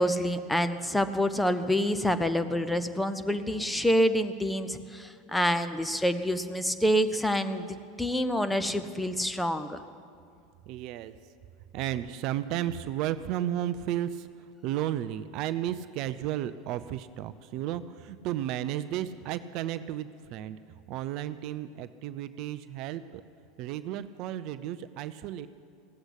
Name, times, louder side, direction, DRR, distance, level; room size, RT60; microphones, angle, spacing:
voice 1, 0.0-7.6 8.0-9.8, equal, 5° left, 10 dB, 0.9 m, -27 dB
voice 2, 10.7-11.1 11.7-14.3 14.6-20.6 20.9-23.2 23.6-25.5, right 12 dB, 55° right, 13 dB, 0.5 m, -33 dB
16.5 x 7.9 x 10.0 m, 2.3 s
hypercardioid pair, 80°, 0 cm